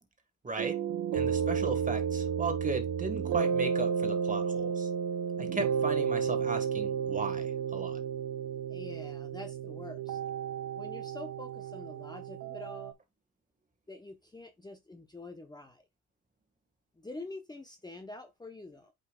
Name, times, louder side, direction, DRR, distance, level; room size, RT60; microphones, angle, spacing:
voice 1, 0.4-0.8 1.1-4.9 5.4-8.0, right 3 dB, 25° right, 1.8 m, -36 dB
sound 1, 0.6-12.9, right 7 dB, 80° right, 1.1 m, -32 dB
voice 2, 8.7-10.2 10.8-12.9 13.9-15.8 17.0-18.9, left 2 dB, 15° left, 1.0 m, -46 dB
8.0 x 5.5 x 2.4 m
cardioid pair, 90°, 30 cm